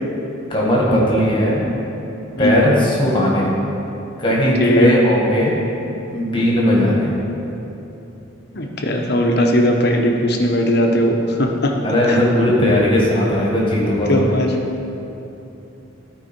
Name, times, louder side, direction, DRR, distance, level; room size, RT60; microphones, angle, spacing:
voice 1, 0.5-1.7 2.4-3.5 4.2-5.5 6.1-7.1 11.8-14.3, left 1 dB, 25° left, -4 dB, 1.6 m, -17 dB
voice 2, 2.4-2.7 4.6-4.9 8.5-11.7 12.1-12.3 14.1-14.5, equal, 50° left, 2 dB, 0.9 m, -18 dB
13.0 x 4.8 x 4.5 m, 2.9 s
head